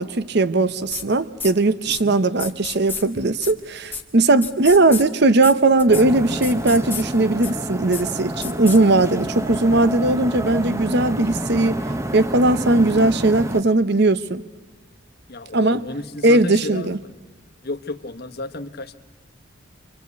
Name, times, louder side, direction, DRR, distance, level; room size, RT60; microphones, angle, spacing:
voice 1, 0.0-11.8 12.1-14.4 15.5-15.8 16.2-17.0, right 2 dB, 50° right, 0.8 m, -18 dB
sound 1, 0.9-1.0 1.4-1.5 1.9-2.0 2.4-3.0 3.4-3.5 3.9-4.0 4.4-5.0 5.4-5.5 5.8-6.0 6.4-7.0 7.4-7.5 7.9-8.0 8.4-8.8, left 5 dB, 10° left, 1.5 m, -30 dB
voice 2, 1.9-2.2 15.3-16.9 17.6-18.9, left 2 dB, 45° left, 1.2 m, -32 dB
sound 2, 5.9-13.6, right 1 dB, 15° right, 0.8 m, -28 dB
26.5 x 25.0 x 8.2 m
head